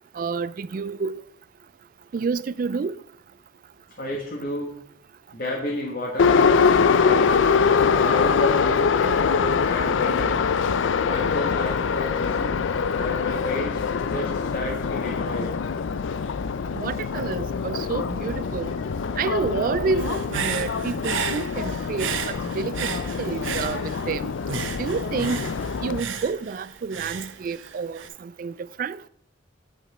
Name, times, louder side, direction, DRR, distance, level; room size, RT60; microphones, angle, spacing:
voice 1, 0.2-1.1 2.1-3.0 16.7-18.7 19.2-22.1 22.5-22.9 23.2-24.3 24.8-25.5 25.8-28.5 28.8-29.0, right 5 dB, 45° right, 0.3 m, -29 dB
voice 2, 4.0-4.7 5.3-10.4 11.0-12.6 12.9-15.6 18.2-19.3, left 1 dB, 50° left, 1.4 m, -32 dB
Subway metro underground, 6.2-26.0, left 5 dB, 80° left, 0.4 m, -24 dB
Human voice / Breathing, 20.0-24.1 24.5-28.1, right 6 dB, 90° right, 0.8 m, -33 dB
9.0 x 5.9 x 4.2 m
head